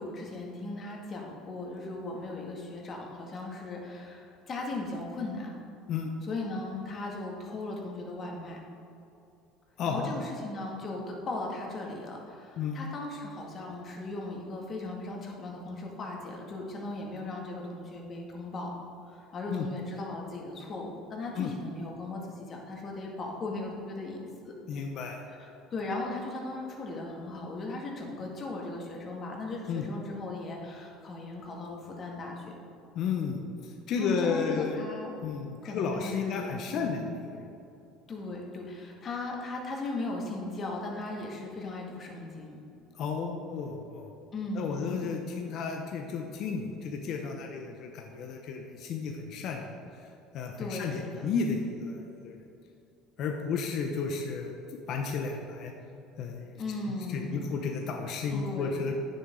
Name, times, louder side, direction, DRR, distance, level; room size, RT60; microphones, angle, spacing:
voice 1, 0.0-5.5 6.3-8.6 9.9-18.7 19.0-24.5 25.3-32.6 34.0-35.1 35.6-37.0 38.1-42.6 44.3-45.1 50.6-51.3 56.6-57.5 58.3-58.7, left 2 dB, 40° left, -1 dB, 2.0 m, -37 dB
voice 2, 9.8-10.2 12.6-12.8 19.5-19.7 21.3-21.5 24.7-25.2 29.7-29.9 32.9-34.8 35.2-37.5 43.0-44.1 44.5-49.7 50.3-52.4 53.2-54.5 54.9-55.7 56.2-59.0, left 5 dB, 60° left, 2 dB, 0.8 m, -33 dB
9.2 x 7.0 x 3.7 m, 2.7 s
supercardioid pair, 85°, 0 cm